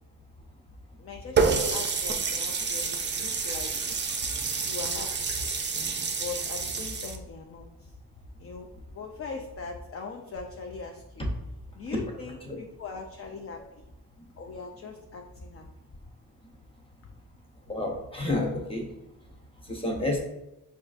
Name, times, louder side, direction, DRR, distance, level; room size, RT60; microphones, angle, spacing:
voice 1, 1.0-3.7 4.6-5.4 6.2-7.9 8.4-11.2 11.7-13.8 14.4-15.6, left 4 dB, 35° left, 2 dB, 0.4 m, -40 dB
Water tap faucet, 1.4-7.2, right 5 dB, 30° right, 0.4 m, -28 dB
voice 2, 17.7-18.9 19.6-20.2, left 2 dB, 15° left, 0 dB, 0.8 m, -29 dB
5.2 x 2.4 x 2.4 m, 0.88 s
cardioid pair, 85°, 41 cm